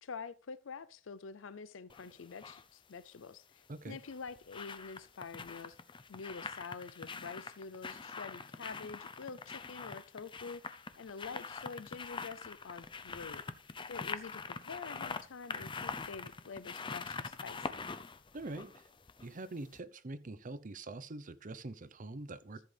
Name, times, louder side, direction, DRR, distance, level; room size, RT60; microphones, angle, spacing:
voice 1, 0.0-5.8 6.1-13.4 13.9-17.9, left 5 dB, 85° left, 0.5 m, -47 dB
sound 1, 1.9-2.6 3.9-19.4 19.7-19.8, left 4 dB, 25° left, 0.6 m, -44 dB
voice 2, 18.3-18.9 19.2-22.6, right 2 dB, 45° right, 0.8 m, -44 dB
14.5 x 7.6 x 3.4 m
head